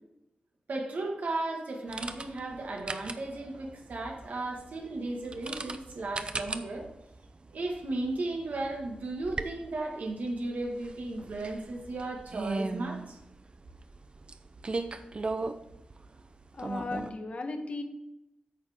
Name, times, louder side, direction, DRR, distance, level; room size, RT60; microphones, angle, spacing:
voice 1, 0.7-6.9 7.5-13.2, right 2 dB, 75° right, 0 dB, 1.7 m, -35 dB
sound 1, 1.9-17.1, right 3 dB, 35° right, 0.6 m, -39 dB
voice 2, 16.5-17.8, left 3 dB, 50° left, 6 dB, 1.1 m, -36 dB
9.4 x 6.4 x 3.6 m, 0.91 s
wide cardioid pair, 95°, 3 cm